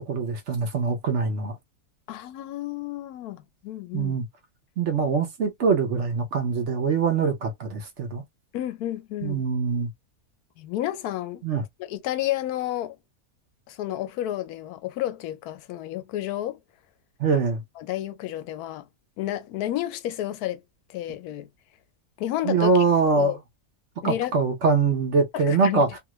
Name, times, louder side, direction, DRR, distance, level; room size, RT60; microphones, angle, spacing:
voice 1, 0.0-1.6 3.9-4.2 4.8-8.2 9.2-9.9 11.4-11.6 17.2-17.6 22.4-23.3 24.0-25.9, right 4 dB, 60° right, 1.0 m, -23 dB
voice 2, 2.1-4.2 8.5-9.4 10.6-11.4 11.8-13.0 13.7-16.6 17.8-18.9 19.2-20.6 20.9-21.5 22.2-22.8 23.2-23.4 24.0-24.3 25.3-25.8, left 13 dB, 90° left, 1.1 m, -31 dB
2.8 x 2.4 x 3.0 m
omnidirectional pair, 1.6 m